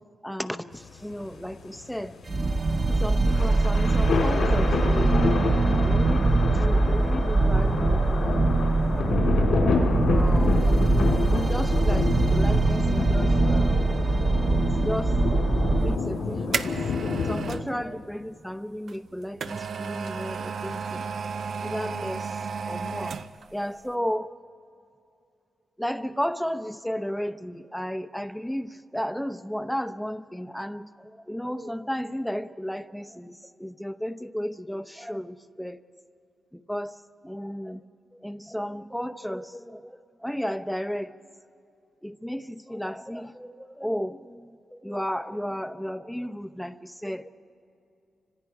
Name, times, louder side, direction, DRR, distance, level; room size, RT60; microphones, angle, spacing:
voice 1, 0.2-2.2 2.9-5.3 5.8-8.5 10.1-14.0 14.6-15.2 15.8-21.1 21.6-22.3 22.7-23.2 23.5-24.3 25.8-35.8 36.5-37.0 37.2-37.8 38.1-41.1 42.0-47.3, equal, 5° left, 11 dB, 0.9 m, -34 dB
sound 1, 0.7-17.6, left 4 dB, 85° left, 3.7 m, -28 dB
sound 2, 2.3-16.0, right 3 dB, 50° right, 1.3 m, -22 dB
sound 3, 15.9-17.7 18.9-23.5 23.9-24.0, right 5 dB, 70° right, 0.7 m, -33 dB
30.0 x 26.0 x 4.8 m, 2.6 s
cardioid pair, 75°, 0 cm